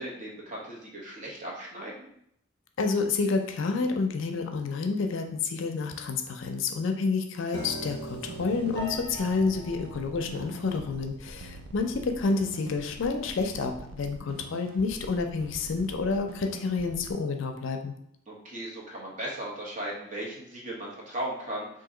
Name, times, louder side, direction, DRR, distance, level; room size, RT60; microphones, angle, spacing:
voice 1, 0.0-2.1 18.3-21.7, right 1 dB, 40° right, -3 dB, 0.9 m, -37 dB
voice 2, 2.8-17.9, left 4 dB, 75° left, 5 dB, 0.4 m, -29 dB
Piano, 7.5-13.7, right 1 dB, 15° left, 0.7 m, -43 dB
sound 1, 8.2-17.1, right 3 dB, 85° right, 0.4 m, -44 dB
2.8 x 2.7 x 3.7 m, 0.71 s
head